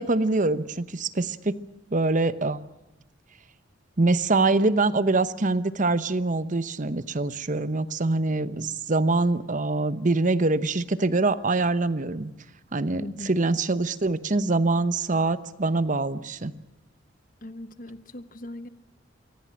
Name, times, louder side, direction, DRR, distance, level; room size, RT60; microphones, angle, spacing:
voice 1, 0.0-1.6 1.9-2.6 4.0-12.3 12.7-16.5, right 3 dB, 40° right, 14 dB, 0.9 m, -24 dB
voice 2, 13.0-13.3 17.4-18.7, left 1 dB, 45° left, 12 dB, 1.3 m, -39 dB
24.5 x 17.5 x 8.8 m, 0.93 s
head